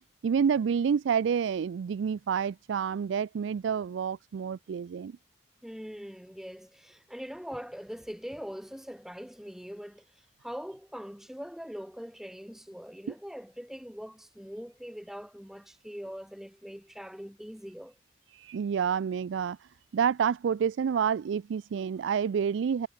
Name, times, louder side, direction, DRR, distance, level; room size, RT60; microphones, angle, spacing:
voice 1, 0.2-5.2 18.3-22.9, right 7 dB, 85° right, 0.3 m, -28 dB
voice 2, 5.6-18.0, equal, ahead, 0.8 m, -42 dB
head